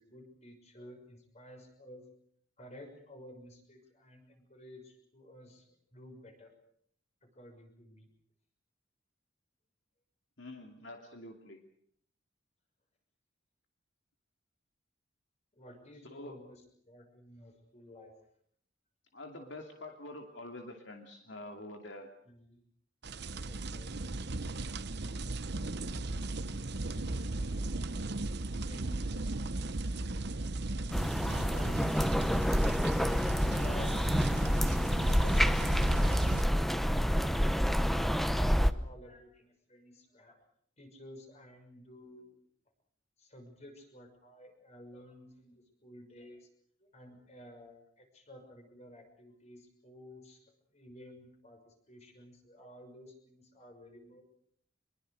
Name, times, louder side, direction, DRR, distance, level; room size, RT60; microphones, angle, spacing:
voice 1, 0.0-2.0 2.6-5.7 5.9-6.5 7.3-8.1 15.5-16.6 16.9-18.1 22.2-22.6 23.5-24.0 28.6-29.1 31.2-31.7 33.5-34.1 34.4-36.2 36.5-40.3 40.8-42.4 43.2-46.5 46.8-50.4 50.7-54.2, left 1 dB, 35° left, 5 dB, 6.4 m, -52 dB
voice 2, 10.4-11.6 16.0-16.4 19.1-22.1 31.3-32.2, left 1 dB, 70° left, 3 dB, 2.7 m, -47 dB
sound 1, 23.0-36.4, right 2 dB, 60° right, 1.0 m, -36 dB
sound 2, 30.9-38.7, equal, ahead, 0.9 m, -28 dB
25.5 x 22.5 x 6.6 m, 0.65 s
head